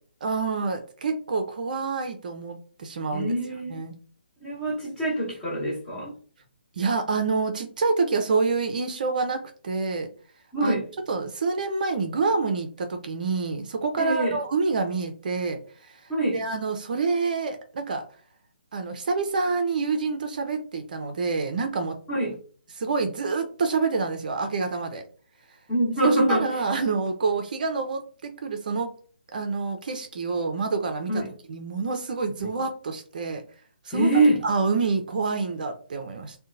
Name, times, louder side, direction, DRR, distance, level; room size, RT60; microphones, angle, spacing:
voice 1, 0.2-3.3 3.7-4.0 6.8-10.1 10.6-10.7 11.1-16.0 16.3-18.0 18.7-22.0 22.8-25.0 26.3-28.9 29.3-31.2 31.5-33.4 33.9-34.1 34.4-36.4, right 4 dB, 50° right, 6 dB, 0.4 m, -27 dB
voice 2, 3.1-3.8 4.4-6.1 10.5-10.9 14.0-14.4 16.1-16.4 22.1-22.4 25.7-26.6 31.1-31.3 32.4-32.5 33.9-34.4, right 2 dB, 10° left, -5 dB, 0.9 m, -24 dB
2.7 x 2.1 x 2.5 m, 0.42 s
figure-of-eight pair, 145°, 6 cm